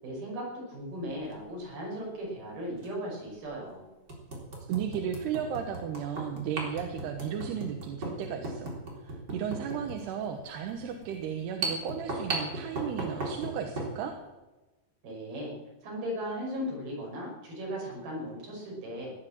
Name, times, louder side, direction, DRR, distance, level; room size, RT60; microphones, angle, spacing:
voice 1, 0.0-3.9 15.0-15.5 15.8-19.1, equal, 65° right, -2 dB, 7.7 m, -37 dB
sound 1, 1.1-1.3 2.8-2.9 3.5-3.6 4.1-14.0, right 2 dB, 25° right, 3.9 m, -37 dB
voice 2, 4.7-14.1, right 8 dB, 85° right, 4 dB, 3.3 m, -35 dB
18.0 x 10.0 x 7.7 m, 1.1 s
omnidirectional pair, 4.6 m